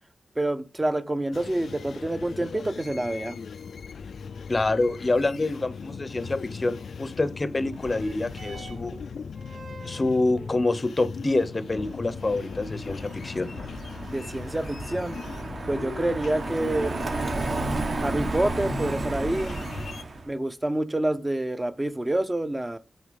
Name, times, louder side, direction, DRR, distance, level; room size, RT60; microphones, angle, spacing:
voice 1, 0.4-3.4 14.1-15.2 15.7-16.9 18.0-19.6 20.3-22.8, right 1 dB, 15° right, 0.7 m, -27 dB
sound 1, 1.3-20.0, left 5 dB, 90° left, 0.4 m, -39 dB
voice 2, 4.5-9.0 9.8-13.5, left 2 dB, 30° left, 0.7 m, -26 dB
sound 2, 7.6-16.5 17.4-17.5, right 3 dB, 90° right, 2.1 m, -51 dB
Car passing by, 11.8-20.3, right 3 dB, 50° right, 1.5 m, -33 dB
8.6 x 4.1 x 5.1 m
wide cardioid pair, 155°, 0 cm